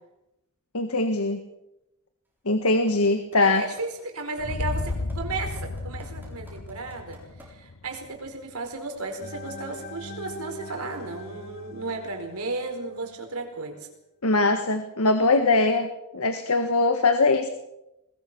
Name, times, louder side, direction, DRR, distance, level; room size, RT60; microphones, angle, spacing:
voice 1, 0.7-1.4 2.4-3.6 14.2-17.5, left 3 dB, 75° left, 7 dB, 1.6 m, -22 dB
sound 1, 2.7-7.4 8.0-8.1, right 2 dB, 10° right, 7.3 m, -50 dB
voice 2, 3.4-7.2 7.5-13.9, right 3 dB, 70° right, 4 dB, 4.7 m, -34 dB
sound 2, 4.4-8.4, left 3 dB, 90° left, 1.1 m, -33 dB
sound 3, 9.2-13.2, left 2 dB, 45° left, 1.4 m, -42 dB
21.0 x 21.0 x 6.1 m, 0.91 s
head